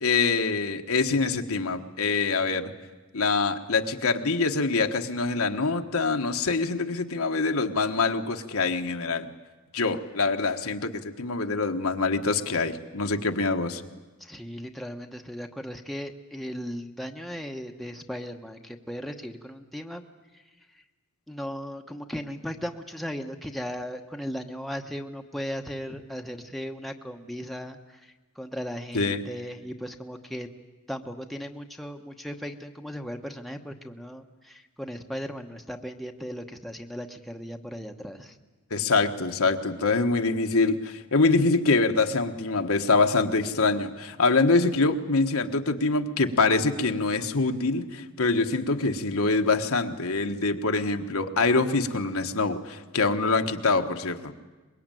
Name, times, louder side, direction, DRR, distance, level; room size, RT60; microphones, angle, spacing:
voice 1, 0.0-2.7 3.1-9.3 9.7-13.8 28.9-29.3 38.7-54.3, left 3 dB, 65° left, 5 dB, 1.4 m, -25 dB
voice 2, 14.2-20.0 20.3-20.4 20.7-20.8 21.3-30.5 30.9-38.4, equal, ahead, 4 dB, 1.1 m, -37 dB
24.0 x 21.5 x 9.2 m, 1.2 s
head